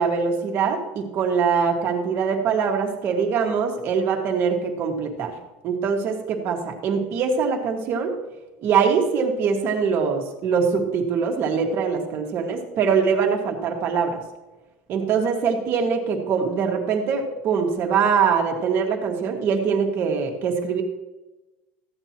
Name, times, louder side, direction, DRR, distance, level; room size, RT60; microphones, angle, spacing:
voice 1, 0.0-5.3 5.6-8.1 8.6-14.2 14.9-20.8, right 6 dB, 45° right, 3 dB, 1.8 m, -23 dB
14.0 x 9.0 x 3.0 m, 1.1 s
cardioid pair, 145°, 5 cm